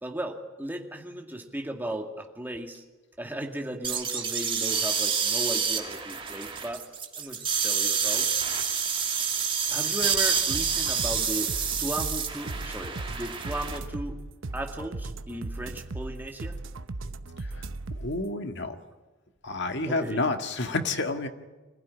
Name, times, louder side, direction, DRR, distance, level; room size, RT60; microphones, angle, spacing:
voice 1, 0.0-2.8 3.2-6.9 7.2-8.3 9.7-14.2 14.5-16.6 19.9-20.3, right 1 dB, 10° right, 3 dB, 2.3 m, -36 dB
sound 1, 3.8-13.8, right 6 dB, 25° right, 2.7 m, -28 dB
sound 2, 10.5-18.2, right 2 dB, 75° right, 0.9 m, -37 dB
voice 2, 18.0-18.8 19.4-21.3, left 2 dB, 65° left, 6 dB, 1.9 m, -29 dB
26.0 x 15.5 x 9.9 m, 1.2 s
head